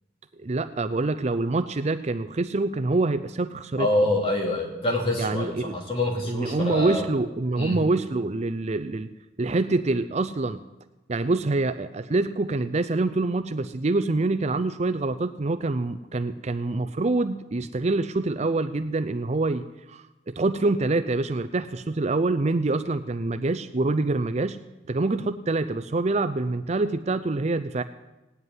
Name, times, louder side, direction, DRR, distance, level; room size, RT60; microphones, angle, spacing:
voice 1, 0.4-3.9 5.2-5.8 6.3-9.1 9.4-10.6 11.1-24.6 24.9-27.8, right 2 dB, 35° right, 10 dB, 0.5 m, -26 dB
voice 2, 3.8-7.1 7.6-7.8, left 1 dB, 30° left, 0 dB, 3.1 m, -26 dB
18.0 x 8.2 x 9.5 m, 1.0 s
head